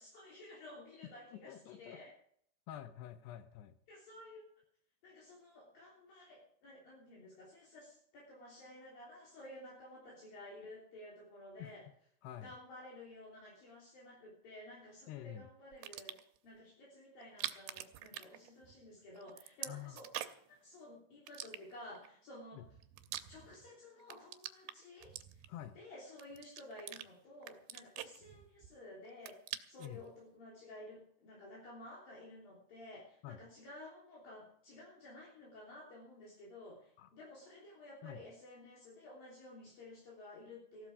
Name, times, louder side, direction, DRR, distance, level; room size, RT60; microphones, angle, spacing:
voice 1, 0.0-2.1 3.9-4.5 5.0-11.8 12.4-20.1 20.5-22.6 23.3-25.5 25.7-40.9, left 1 dB, 60° left, -4 dB, 5.0 m, -53 dB
voice 2, 1.3-2.0 2.7-3.7 11.6-11.8 12.2-12.6 15.1-15.5 19.7-20.0 22.5-22.7 25.5-25.8 29.8-30.0 33.2-33.4 37.0-37.1 38.0-38.2, left 11 dB, 90° left, 10 dB, 3.0 m, -48 dB
sound 1, 15.7-16.4 17.2-18.9 19.2-20.5 21.3-22.1 22.6-23.7 24.0-25.7 26.2-27.1 27.4-28.8 29.1-30.0, right 13 dB, 85° right, 3.0 m, -45 dB
16.0 x 12.5 x 4.9 m, 0.63 s
omnidirectional pair, 4.7 m